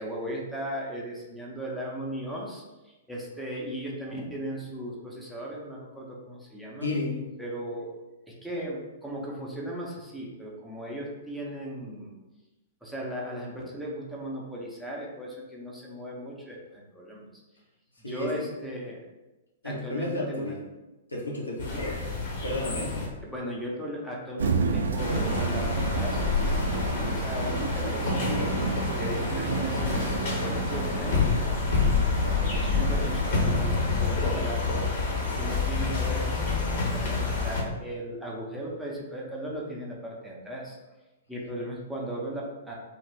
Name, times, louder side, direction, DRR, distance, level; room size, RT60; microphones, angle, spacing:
voice 1, 0.0-6.9 7.4-7.9 8.3-12.1 12.8-17.2 18.1-19.0 19.6-20.5 21.7-21.8 23.2-26.5 26.8-28.5 29.0-31.6 32.5-34.9 35.3-40.8 41.3-42.7, right 1 dB, ahead, -4 dB, 0.6 m, -37 dB
voice 2, 6.8-7.2 18.0-18.5 19.6-20.6 21.1-22.0 22.4-23.1 26.8-27.1 31.7-32.1, left 2 dB, 80° left, -3 dB, 0.7 m, -33 dB
sound 1, 21.6-23.1 25.0-37.6, left 4 dB, 45° left, 0.8 m, -28 dB
sound 2, 24.4-33.7, right 4 dB, 65° right, 0.3 m, -31 dB
2.5 x 2.2 x 3.1 m, 1.1 s
figure-of-eight pair, 110°, 0 cm